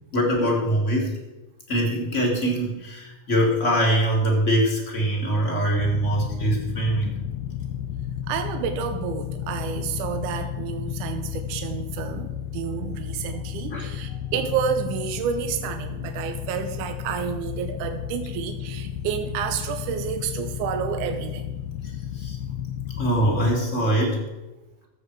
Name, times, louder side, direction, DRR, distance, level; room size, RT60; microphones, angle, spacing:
voice 1, 0.1-1.1 1.7-7.1 13.7-13.9 22.1-22.4 23.0-24.2, right 1 dB, 30° left, 0 dB, 1.9 m, -23 dB
sound 1, 5.8-23.6, left 10 dB, 80° left, 1.6 m, -33 dB
voice 2, 8.3-21.6 24.0-24.1, right 8 dB, 85° right, 7 dB, 2.2 m, -30 dB
14.5 x 7.6 x 4.6 m, 1.1 s
omnidirectional pair, 3.6 m